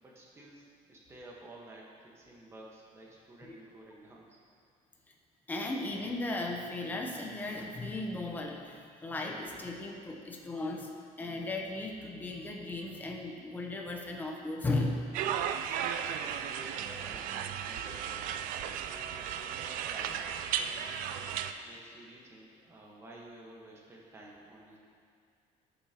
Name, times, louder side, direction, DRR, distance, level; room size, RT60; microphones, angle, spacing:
voice 1, 0.0-4.4 16.1-18.4 18.9-20.3 20.6-21.3 21.6-24.8, right 1 dB, 20° right, -3 dB, 1.3 m, -52 dB
voice 2, 5.5-15.0, left 2 dB, 10° left, 1 dB, 0.8 m, -36 dB
sound 1, 15.1-21.5, right 9 dB, 75° right, 0.4 m, -35 dB
14.0 x 6.9 x 2.9 m, 2.2 s
cardioid pair, 170°, 14 cm